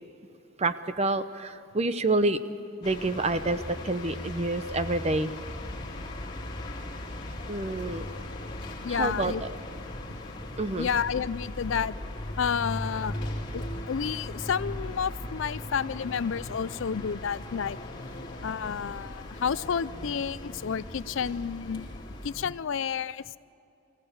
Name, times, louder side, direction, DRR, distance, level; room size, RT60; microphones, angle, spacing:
voice 1, 0.6-2.4 2.8-5.3 7.5-8.1 8.9-9.5 10.6-10.9, right 2 dB, 30° right, 11 dB, 0.7 m, -28 dB
sound 1, 2.8-22.4, left 1 dB, 25° left, 3.5 m, -38 dB
voice 2, 8.8-9.4 10.8-11.9 12.4-13.2 13.5-17.8 18.4-21.9 22.2-23.2, left 7 dB, 65° left, 17 dB, 0.4 m, -30 dB
24.5 x 16.0 x 8.0 m, 2.8 s
head